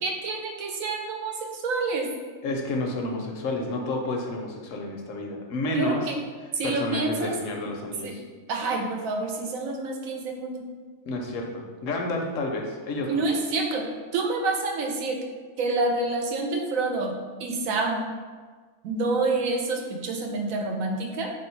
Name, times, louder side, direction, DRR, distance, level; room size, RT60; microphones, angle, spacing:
voice 1, 0.0-2.1 5.7-6.2 6.5-7.3 8.0-8.2 8.5-10.7 13.1-13.8 14.1-15.2 15.6-18.0 18.8-21.3, right 3 dB, 80° right, 2 dB, 1.0 m, -28 dB
voice 2, 2.4-6.0 6.6-8.2 11.1-13.2, left 2 dB, 75° left, 1 dB, 1.0 m, -30 dB
3.1 x 2.7 x 4.4 m, 1.5 s
omnidirectional pair, 1.4 m